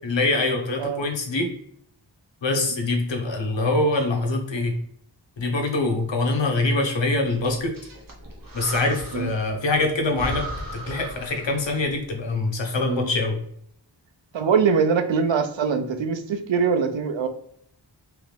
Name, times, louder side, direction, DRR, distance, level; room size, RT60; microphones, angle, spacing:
voice 1, 0.0-1.5 2.4-4.8 5.4-7.7 8.5-10.4 10.7-13.4, left 2 dB, 80° left, 3 dB, 0.9 m, -24 dB
Breathing, 7.3-9.5 9.8-9.9 10.1-11.8, right 1 dB, 50° right, 1.0 m, -36 dB
voice 2, 14.3-17.3, right 6 dB, 90° right, 8 dB, 0.6 m, -23 dB
3.4 x 3.0 x 3.2 m, 0.67 s
wide cardioid pair, 50°, 44 cm